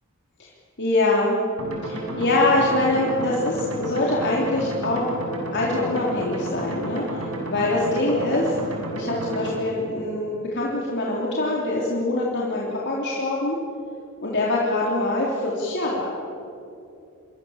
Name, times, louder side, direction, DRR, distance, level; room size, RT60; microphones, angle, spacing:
voice 1, 0.8-1.4 1.8-5.1 5.5-8.5 8.9-13.6 14.2-16.1, left 2 dB, 55° left, -4 dB, 3.8 m, -24 dB
sound 1, 1.6-9.6, right 1 dB, 85° right, 6.5 m, -31 dB
29.5 x 26.5 x 7.4 m, 2.7 s
head